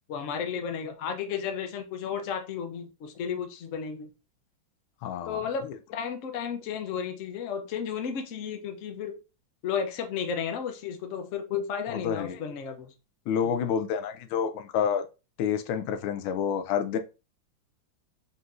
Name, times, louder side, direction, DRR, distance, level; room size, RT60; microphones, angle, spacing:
voice 1, 0.1-4.1 5.3-9.2 9.6-12.9 13.4-13.6, left 7 dB, 65° left, 0.7 m, -33 dB
voice 2, 5.0-5.8 11.9-12.5 13.3-15.1 15.4-17.0, left 7 dB, 90° left, 1.4 m, -29 dB
4.1 x 3.9 x 2.4 m
omnidirectional pair, 2.2 m